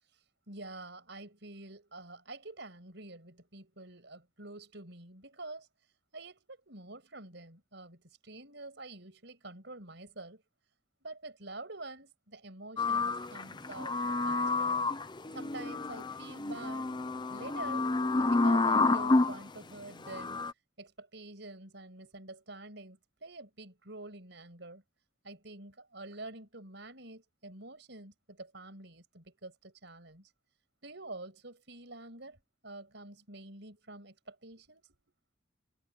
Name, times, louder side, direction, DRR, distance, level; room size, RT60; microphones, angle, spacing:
voice 1, 0.5-5.7 6.1-10.4 11.0-14.8 15.3-16.9 17.3-17.9 18.2-20.4 20.8-24.8 25.2-30.3 30.8-32.4 32.6-34.9, right 2 dB, 60° right, 6.4 m, -47 dB
sound 1, 12.8-19.4 20.1-20.5, left 3 dB, 20° left, 0.7 m, -29 dB
head